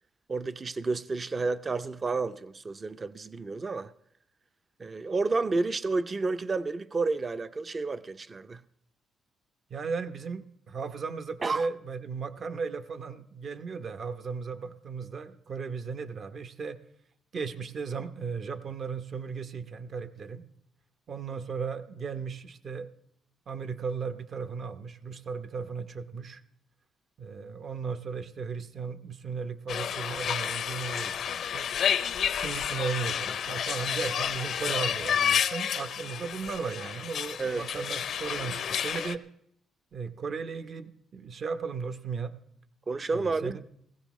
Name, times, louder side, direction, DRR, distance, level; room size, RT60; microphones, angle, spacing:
voice 1, 0.3-3.9 4.8-8.6 11.4-11.7 37.4-37.7 42.9-43.6, right 3 dB, 30° right, 0.5 m, -30 dB
voice 2, 9.7-16.8 17.3-20.4 21.1-22.9 23.5-26.4 27.2-31.7 32.4-39.2 39.9-42.4 43.1-43.6, right 5 dB, 50° right, 0.9 m, -36 dB
sound 1, 29.7-39.2, left 8 dB, 65° left, 0.5 m, -30 dB
18.5 x 15.5 x 3.1 m
cardioid pair, 90°, 0 cm